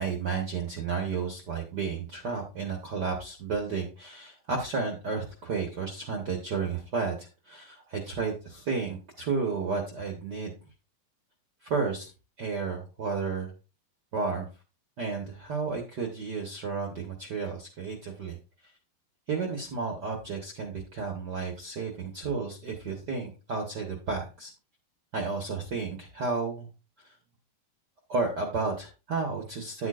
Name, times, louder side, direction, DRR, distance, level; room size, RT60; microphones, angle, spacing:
voice 1, 0.0-10.5 11.6-12.1 12.4-13.5 14.1-14.5 15.0-18.4 19.3-24.5 25.1-26.7 28.1-29.9, right 4 dB, 75° right, 2 dB, 0.9 m, -32 dB
9.2 x 9.1 x 2.5 m, 0.30 s
omnidirectional pair, 4.1 m